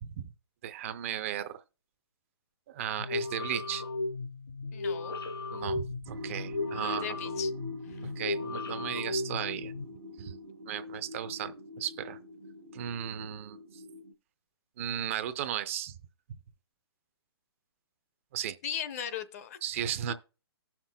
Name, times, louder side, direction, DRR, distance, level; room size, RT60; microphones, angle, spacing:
voice 1, 0.6-1.6 2.7-3.8 5.5-7.2 8.0-9.7 10.2-10.3 10.7-12.2 12.7-13.8 14.8-16.0 18.3-18.6 19.6-20.1, right 10 dB, 35° right, 0.5 m, -35 dB
sound 1, 3.0-9.9, left 3 dB, 75° left, 2.7 m, -35 dB
voice 2, 4.7-5.2 6.6-7.5 7.9-8.1 18.6-19.6, left 9 dB, 35° left, 0.6 m, -38 dB
sound 2, 6.1-14.1, left 2 dB, 80° right, 1.3 m, -43 dB
17.5 x 5.8 x 2.2 m
hypercardioid pair, 155°, 13 cm